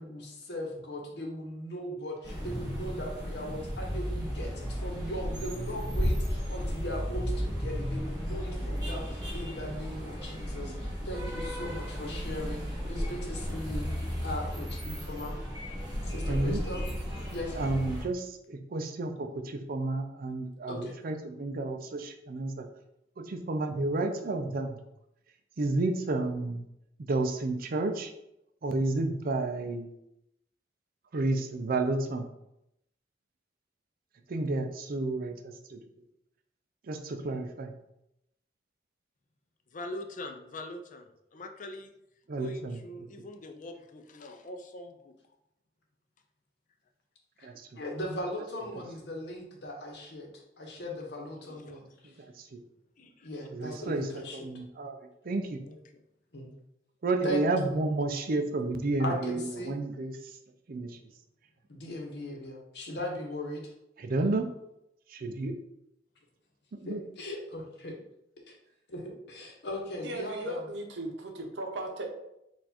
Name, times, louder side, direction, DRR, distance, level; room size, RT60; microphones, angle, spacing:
voice 1, 0.0-13.9 14.2-15.3 16.0-16.8 17.3-17.7 20.7-20.9 47.7-50.3 50.6-52.2 53.0-54.5 56.3-56.5 57.2-57.4 59.0-59.7 61.7-63.7 66.9-68.0 68.5-68.6 68.9-70.6, equal, 65° left, 0 dB, 1.0 m, -38 dB
sound 1, 2.2-18.0, equal, 20° right, 1.4 m, -34 dB
voice 2, 16.3-16.6 17.6-22.7 23.2-24.8 25.6-26.6 27.1-28.1 28.6-29.9 31.1-32.3 34.3-35.8 36.9-37.7 42.3-42.8 47.4-47.7 52.0-52.6 53.5-55.0 55.2-55.6 57.0-60.4 60.7-61.0 64.0-64.5 65.1-65.6 66.8-67.0, right 2 dB, 55° right, 6 dB, 0.5 m, -31 dB
voice 3, 39.7-41.9 42.4-45.1 51.3-52.1 53.0-53.3 55.7-56.0, left 1 dB, 45° left, 5 dB, 0.5 m, -43 dB
voice 4, 70.0-71.1 71.4-72.1, right 1 dB, 75° right, 3 dB, 0.8 m, -36 dB
4.4 x 2.5 x 4.2 m, 0.83 s
head